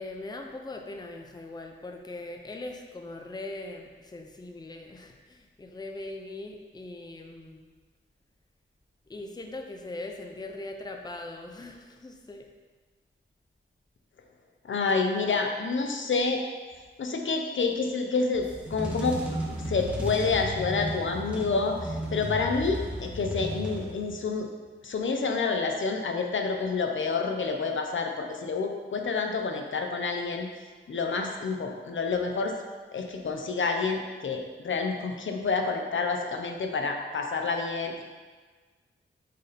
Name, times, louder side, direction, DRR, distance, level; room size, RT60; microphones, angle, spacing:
voice 1, 0.0-7.7 9.1-12.5, left 2 dB, 20° left, 3 dB, 0.6 m, -40 dB
voice 2, 14.6-16.4 17.0-24.5 24.8-30.5 30.9-32.5 32.9-38.0, left 4 dB, 70° left, 3 dB, 0.8 m, -28 dB
sound 1, 18.3-24.3, equal, 5° right, 1.2 m, -34 dB
8.3 x 4.2 x 4.2 m, 1.4 s
wide cardioid pair, 110°, 21 cm